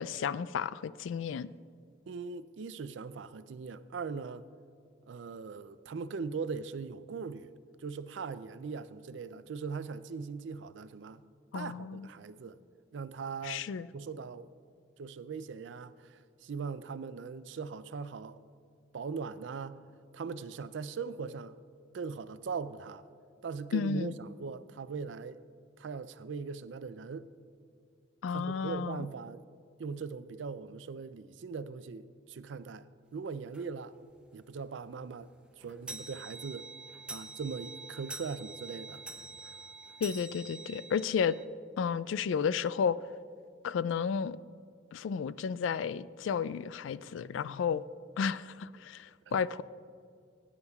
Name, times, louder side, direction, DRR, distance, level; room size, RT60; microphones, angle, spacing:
voice 1, 0.0-1.5 11.5-12.1 13.4-13.9 23.7-24.2 28.2-29.1 40.0-41.4 41.8-43.0 43.6-44.4 44.9-47.8 48.2-49.6, left 6 dB, 85° left, 0.3 m, -32 dB
voice 2, 2.1-4.5 5.1-7.5 7.8-11.2 11.5-12.6 12.9-13.6 13.9-14.5 15.0-18.4 18.9-19.8 20.1-21.6 21.9-23.1 23.4-25.4 25.8-27.3 28.3-29.4 29.8-34.0 34.3-35.3 35.6-36.7 37.1-39.0 39.4-39.6 49.3-49.4, right 5 dB, 75° right, 0.4 m, -40 dB
sound 1, 33.5-33.7 34.2-34.3 34.6-34.7 35.0-41.5, right 3 dB, 5° right, 0.5 m, -46 dB
18.5 x 9.6 x 2.4 m
head